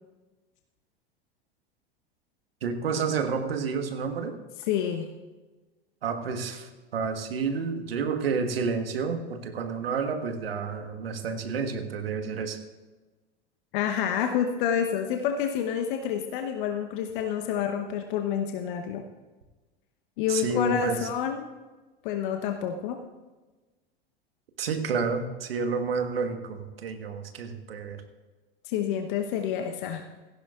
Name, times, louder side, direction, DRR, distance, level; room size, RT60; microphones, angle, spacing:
voice 1, 2.6-4.4 6.0-12.6 20.3-21.1 24.6-28.0, right 5 dB, 75° right, 7 dB, 1.4 m, -30 dB
voice 2, 4.7-5.1 13.7-19.0 20.2-21.5 22.0-23.0 28.6-30.0, left 8 dB, 60° left, 5 dB, 1.0 m, -28 dB
17.0 x 15.5 x 2.4 m, 1.2 s
hypercardioid pair, 85°, 30 cm